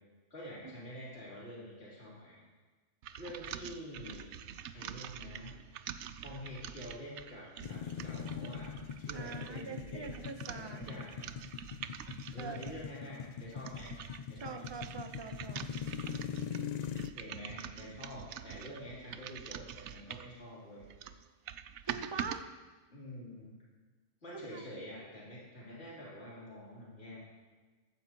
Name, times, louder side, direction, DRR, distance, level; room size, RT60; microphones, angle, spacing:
voice 1, 0.3-2.4 3.2-4.3 4.7-5.5 6.2-8.7 9.0-11.2 12.3-14.0 14.3-14.7 17.1-20.9 22.9-23.6 24.2-27.2, left 1 dB, 55° left, -8 dB, 3.6 m, -47 dB
sound 1, 3.0-12.9 13.4-20.4 20.8-22.4, right 9 dB, 70° right, 0.8 m, -45 dB
sound 2, 7.6-17.1, left 8 dB, 85° left, 0.3 m, -42 dB
voice 2, 9.1-11.1 12.4-12.6 14.4-15.7 21.9-22.5 24.3-24.6, right 5 dB, 25° right, 6 dB, 0.7 m, -44 dB
15.5 x 14.0 x 3.0 m, 1.3 s
omnidirectional pair, 1.3 m